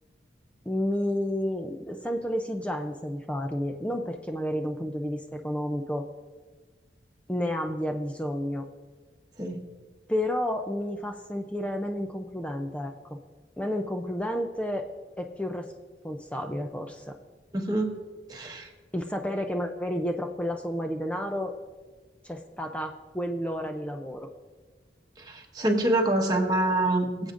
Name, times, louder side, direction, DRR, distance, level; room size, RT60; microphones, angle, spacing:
voice 1, 0.7-6.1 7.3-8.7 10.1-13.2 13.6-14.9 15.2-15.7 16.0-17.2 18.9-21.5 22.2-24.3, equal, 5° left, 4 dB, 0.4 m, -31 dB
voice 2, 17.5-18.0 18.3-18.7 25.3-27.3, right 1 dB, 25° right, 1 dB, 1.3 m, -26 dB
23.0 x 7.9 x 2.5 m, 1.4 s
head